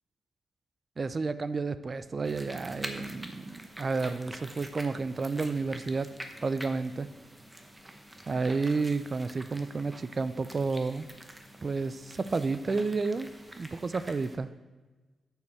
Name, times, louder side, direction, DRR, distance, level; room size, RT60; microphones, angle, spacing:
voice 1, 1.0-6.1 6.4-7.1 8.3-11.1 11.6-13.3 13.6-14.5, right 4 dB, 35° right, 13 dB, 0.3 m, -31 dB
sound 1, 2.2-14.4, right 1 dB, 15° right, 0.8 m, -46 dB
8.5 x 6.4 x 4.4 m, 1.3 s
cardioid pair, 110°, 0 cm